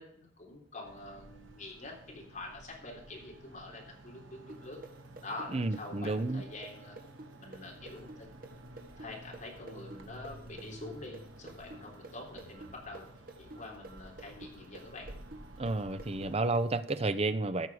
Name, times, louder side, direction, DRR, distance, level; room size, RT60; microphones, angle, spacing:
voice 1, 0.0-4.8 5.2-7.0 7.4-8.3 9.0-13.0 13.4-15.1, left 2 dB, 40° left, -1 dB, 3.6 m, -46 dB
sound 1, 0.8-16.5, right 1 dB, 90° right, 1.4 m, -52 dB
sound 2, 4.5-12.1 12.4-17.0, right 2 dB, 50° right, 1.6 m, -48 dB
voice 2, 5.5-6.4 15.6-17.7, right 2 dB, 35° right, 12 dB, 0.7 m, -31 dB
14.0 x 6.7 x 4.9 m, 0.66 s
head